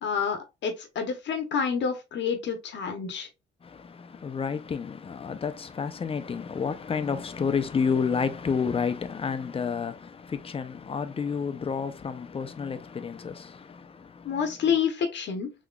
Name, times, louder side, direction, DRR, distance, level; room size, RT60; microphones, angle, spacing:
voice 1, 0.0-3.3 14.2-15.5, left 6 dB, 65° left, 0.8 m, -28 dB
voice 2, 3.6-14.5, left 6 dB, 30° left, 0.5 m, -30 dB
3.7 x 3.0 x 2.3 m
cardioid pair, 90°, 20 cm